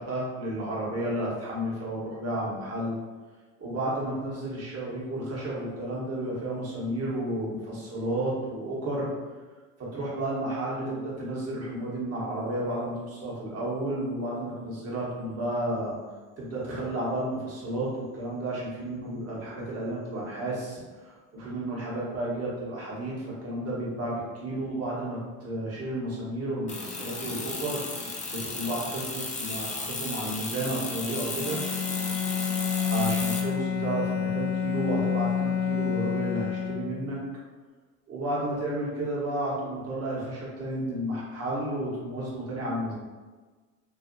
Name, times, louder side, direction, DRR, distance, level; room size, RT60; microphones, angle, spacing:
voice 1, 0.0-3.0 3.6-9.1 9.8-16.0 16.4-27.8 28.3-31.6 32.9-37.2 38.1-42.9, right 1 dB, 35° right, -5 dB, 1.1 m, -32 dB
sound 1, 26.7-33.4, left 3 dB, 20° left, 0.4 m, -34 dB
Bowed string instrument, 31.4-37.2, left 8 dB, 70° left, 0.5 m, -29 dB
2.7 x 2.4 x 2.6 m, 1.4 s
hypercardioid pair, 85°, 41 cm